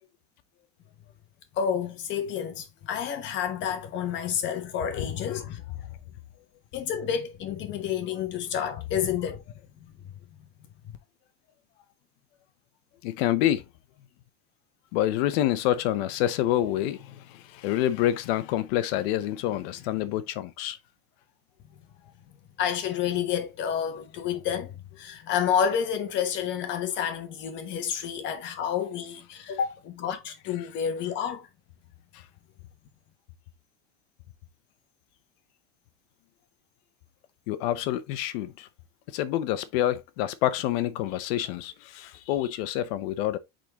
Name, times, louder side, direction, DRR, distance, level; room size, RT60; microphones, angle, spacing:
voice 1, 1.5-5.6 6.7-9.4 10.0-10.1 22.6-31.5, left 8 dB, 30° left, 1.1 m, -29 dB
voice 2, 13.0-13.7 14.9-20.8 32.1-32.2 37.5-38.7 39.1-43.4, left 13 dB, 55° left, 0.8 m, -27 dB
8.2 x 3.9 x 3.0 m
cardioid pair, 175°, 36 cm